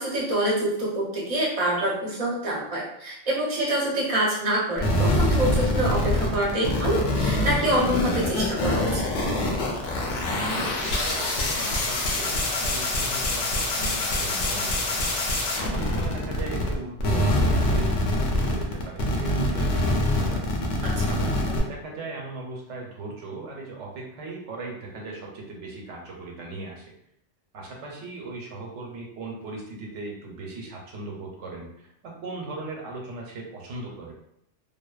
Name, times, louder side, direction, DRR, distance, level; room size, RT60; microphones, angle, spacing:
voice 1, 0.0-9.0 20.8-20.9, right 1 dB, 35° right, -5 dB, 0.7 m, -26 dB
sound 1, 4.8-16.7 17.0-21.6, left 1 dB, 85° left, 0.9 m, -25 dB
voice 2, 10.4-26.9 27.5-34.1, right 3 dB, 90° right, -1 dB, 1.0 m, -38 dB
2.7 x 2.0 x 2.3 m, 0.76 s
omnidirectional pair, 1.2 m